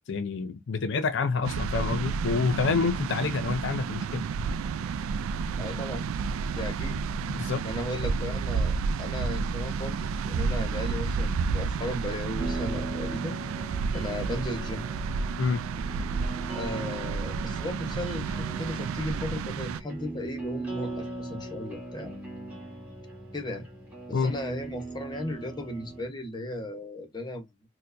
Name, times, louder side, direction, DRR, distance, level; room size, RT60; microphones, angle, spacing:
voice 1, 0.1-4.2 7.3-7.6 15.4-15.6 24.1-24.3, left 4 dB, 60° left, 0.4 m, -27 dB
sound 1, 1.4-19.8, right 5 dB, 80° right, 0.3 m, -31 dB
voice 2, 5.6-6.0 6.5-7.0 7.6-13.4 13.9-14.8 16.5-22.1 23.3-23.7 24.1-27.5, left 1 dB, 20° left, 0.8 m, -36 dB
sound 2, 12.4-26.1, right 2 dB, 10° right, 1.6 m, -39 dB
4.4 x 2.1 x 2.5 m
head